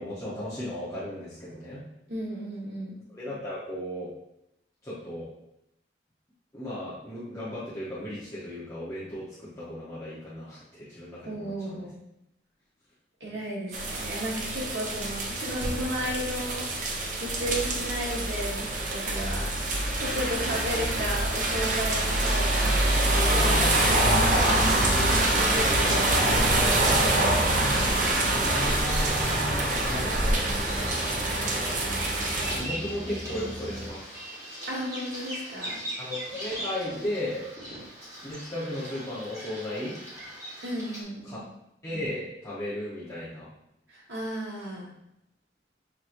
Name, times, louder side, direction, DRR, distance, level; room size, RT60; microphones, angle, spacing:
voice 1, 0.0-1.8 3.1-4.1 4.8-5.3 6.5-11.9 17.4-17.6 20.4-20.5 25.7-25.9 28.5-30.9 31.4-31.8 32.5-34.2 36.0-37.4 38.2-40.0 41.2-41.4 41.8-43.5, left 1 dB, 15° left, -11 dB, 1.0 m, -35 dB
voice 2, 2.1-3.0 11.2-12.0 13.2-19.5 19.9-26.9 27.2-27.4 34.7-35.8 40.6-41.5 43.9-44.9, equal, 75° right, -4 dB, 1.4 m, -34 dB
sound 1, 13.7-32.6, right 1 dB, 45° right, 0.7 m, -25 dB
sound 2, 24.6-33.9, equal, ahead, 0.5 m, -39 dB
Bird vocalization bird call bird song, 27.9-41.0, equal, 20° right, 1.6 m, -40 dB
5.9 x 3.1 x 2.6 m, 0.82 s
head